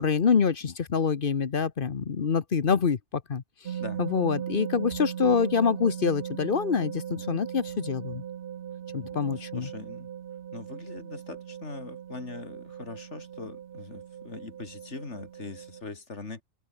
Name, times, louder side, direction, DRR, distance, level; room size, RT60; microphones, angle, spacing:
voice 1, 0.0-3.4 4.0-8.2 8.9-9.7, left 6 dB, 45° left, 1.1 m, -26 dB
sound 1, 3.6-15.8, right 9 dB, 55° right, 0.8 m, -38 dB
voice 2, 9.3-10.1 10.5-16.4, left 3 dB, 65° left, 2.9 m, -41 dB
open air
omnidirectional pair, 1.3 m